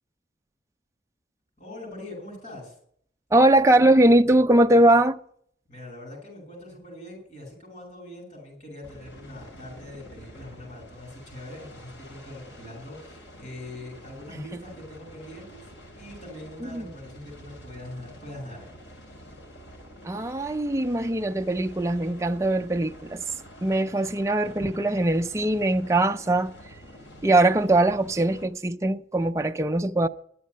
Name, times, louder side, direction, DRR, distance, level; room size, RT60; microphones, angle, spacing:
voice 1, 1.6-2.8 5.7-15.7 16.0-18.9, left 1 dB, 40° left, 7.1 m, -42 dB
voice 2, 3.3-5.2 16.7-16.8 20.0-23.2 23.6-26.5 27.2-30.1, right 1 dB, 15° right, 0.4 m, -21 dB
sound 1, 8.8-28.5, equal, 85° left, 3.3 m, -47 dB
11.0 x 8.3 x 9.6 m
head